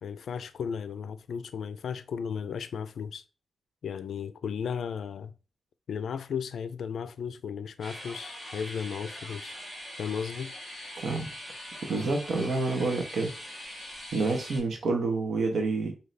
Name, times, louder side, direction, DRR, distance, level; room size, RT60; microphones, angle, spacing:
voice 1, 0.0-3.2 3.8-5.3 5.9-9.5 10.0-10.5, left 7 dB, 90° left, 0.3 m, -35 dB
sound 1, 7.8-14.6, equal, 5° right, 2.1 m, -42 dB
voice 2, 11.0-11.3 11.9-13.3 14.1-15.9, right 3 dB, 80° right, 1.0 m, -28 dB
4.0 x 2.7 x 3.2 m
wide cardioid pair, 120°, 0 cm